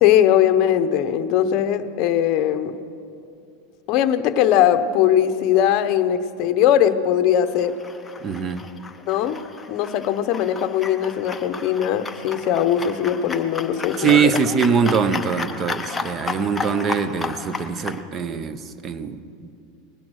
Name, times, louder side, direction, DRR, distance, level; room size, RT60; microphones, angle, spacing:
voice 1, 0.0-2.7 3.9-7.7 9.1-9.4 9.7-14.3, left 10 dB, 45° left, 0.8 m, -20 dB
sound 1, 7.5-18.0, left 4 dB, 10° left, 0.6 m, -33 dB
voice 2, 8.2-8.7 14.0-19.5, right 6 dB, 25° right, 0.7 m, -22 dB
19.5 x 10.5 x 6.4 m
supercardioid pair, 150°, 0 cm